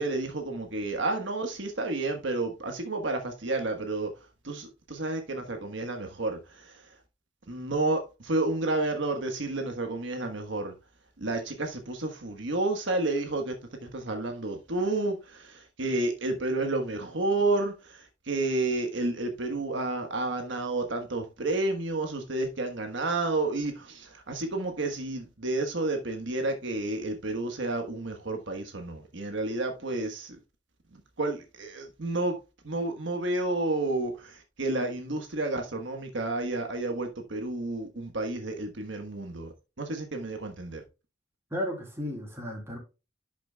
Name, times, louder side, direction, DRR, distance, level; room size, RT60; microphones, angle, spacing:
voice 1, 0.0-7.0 7.5-10.7 11.2-30.4 30.9-32.4 32.6-40.8, right 2 dB, 70° right, 1.4 m, -31 dB
voice 2, 41.5-42.8, equal, 15° right, 3.1 m, -34 dB
11.5 x 6.1 x 2.3 m
head